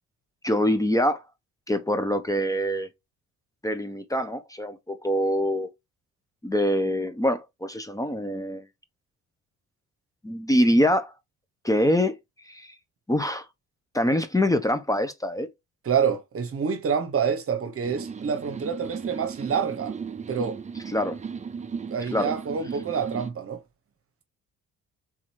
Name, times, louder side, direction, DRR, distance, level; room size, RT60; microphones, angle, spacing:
voice 1, 0.4-1.2 1.7-2.9 3.6-5.7 6.4-8.6 10.2-11.1 11.6-12.2 12.5-12.7 13.1-13.5 13.9-15.5 20.9-21.2 22.1-22.3, equal, 10° left, 0.8 m, -24 dB
voice 2, 15.8-19.9 20.3-20.6 21.9-23.6, right 6 dB, 45° right, 1.0 m, -27 dB
sound 1, 17.8-23.3, right 6 dB, 25° right, 0.6 m, -36 dB
3.8 x 2.9 x 4.5 m
cardioid pair, 90°, 30 cm